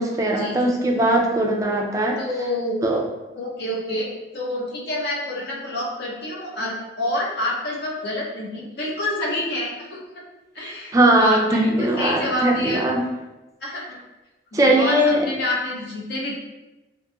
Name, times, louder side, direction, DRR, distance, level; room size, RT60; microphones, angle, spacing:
voice 1, 0.0-2.2 2.8-3.0 10.9-13.0 14.5-15.2, right 1 dB, 20° right, 0 dB, 0.3 m, -19 dB
voice 2, 2.2-2.8 3.3-10.2 10.5-12.8 13.6-14.0 14.5-16.3, left 1 dB, 60° left, -3 dB, 0.6 m, -28 dB
2.8 x 2.6 x 2.2 m, 1.0 s
head